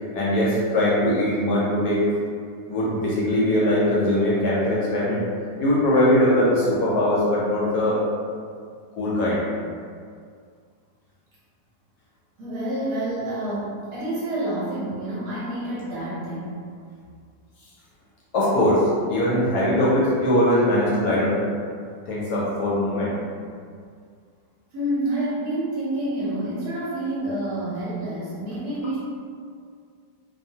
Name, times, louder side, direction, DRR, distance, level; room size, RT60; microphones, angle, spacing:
voice 1, 0.1-2.0 2.7-5.2 5.6-8.0 8.9-9.4 18.3-21.4 22.1-23.1, left 1 dB, 70° left, -7 dB, 1.1 m, -21 dB
voice 2, 12.4-16.5 24.7-29.0, right 1 dB, 65° right, -8 dB, 1.1 m, -28 dB
2.8 x 2.3 x 2.7 m, 2.1 s
omnidirectional pair, 1.9 m